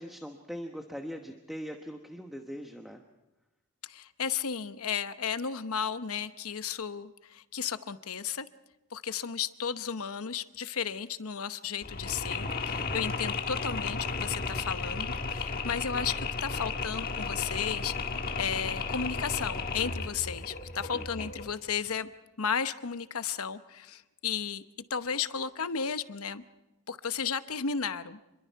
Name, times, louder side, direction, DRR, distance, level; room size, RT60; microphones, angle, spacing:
voice 1, 0.0-3.0 20.9-21.3, equal, ahead, 3 dB, 1.1 m, -41 dB
voice 2, 3.8-8.5 8.9-17.9 18.4-22.1 22.4-24.6 24.9-26.4 26.9-28.2, left 7 dB, 75° left, 11 dB, 0.9 m, -34 dB
Mechanisms, 11.8-21.6, left 4 dB, 45° left, 1.4 m, -34 dB
27.5 x 22.5 x 4.7 m, 1.0 s
head